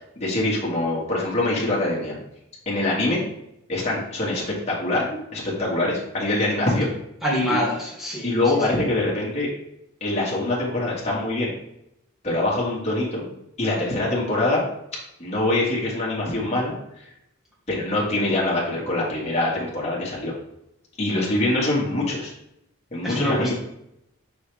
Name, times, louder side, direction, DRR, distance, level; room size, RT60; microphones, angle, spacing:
voice 1, 0.1-2.2 2.6-3.2 3.7-5.0 5.3-6.9 7.5-7.6 8.2-9.5 10.0-11.5 12.2-13.3 13.6-14.6 15.2-16.8 17.7-20.3 21.0-22.3 22.9-23.5, left 2 dB, 30° left, -5 dB, 1.8 m, -24 dB
voice 2, 7.2-8.4 23.0-23.5, equal, ahead, -7 dB, 2.3 m, -25 dB
5.6 x 5.5 x 3.4 m, 0.79 s
head